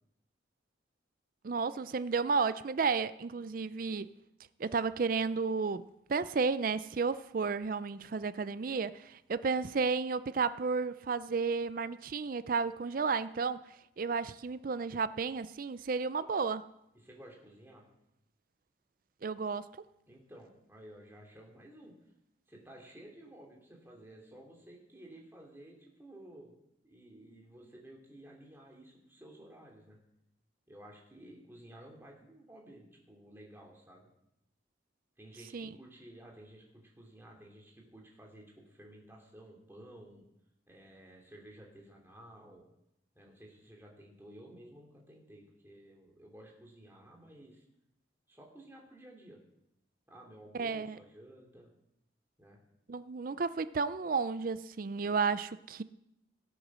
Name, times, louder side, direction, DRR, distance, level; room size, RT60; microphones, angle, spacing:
voice 1, 1.4-4.1 4.6-5.8 6.1-13.6 14.0-16.6 19.2-19.7 35.5-35.7 50.6-50.9 52.9-55.8, right 5 dB, 45° right, 15 dB, 0.4 m, -32 dB
voice 2, 16.9-17.9 20.1-21.9 22.5-26.5 26.8-30.0 30.7-34.1 35.2-40.2 40.7-42.6 43.1-47.6 48.3-49.4 50.1-51.7 52.4-52.6, right 1 dB, 10° right, -1 dB, 2.9 m, -54 dB
17.5 x 8.1 x 6.2 m, 0.83 s
head